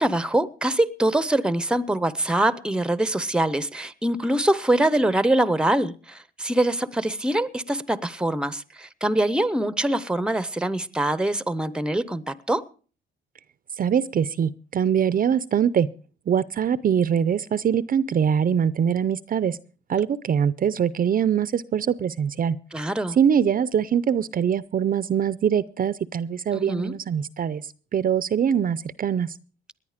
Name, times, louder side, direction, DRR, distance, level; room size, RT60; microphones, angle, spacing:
voice 1, 0.0-12.6 22.7-23.2 26.5-26.9, right 1 dB, 5° right, 0.8 m, -24 dB
voice 2, 13.8-15.9 16.3-19.6 19.9-22.6 23.1-27.6 27.9-29.3, right 8 dB, 45° right, 0.6 m, -23 dB
18.5 x 10.5 x 5.0 m
cardioid pair, 90°, 20 cm